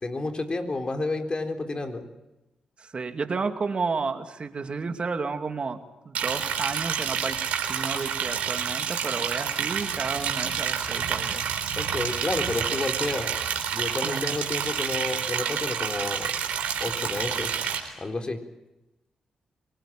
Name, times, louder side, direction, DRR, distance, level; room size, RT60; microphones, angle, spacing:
voice 1, 0.0-2.1 11.8-13.4 13.7-16.3 16.8-17.5 18.0-18.4, left 2 dB, 40° left, 5 dB, 4.1 m, -30 dB
voice 2, 2.8-5.8 6.0-7.4 7.6-11.5 14.0-14.3, right 4 dB, 50° right, 7 dB, 2.6 m, -32 dB
Liquid, 6.1-17.8, right 8 dB, 80° right, 4.1 m, -29 dB
24.5 x 19.5 x 9.0 m, 1.0 s
supercardioid pair, 45°, 2 cm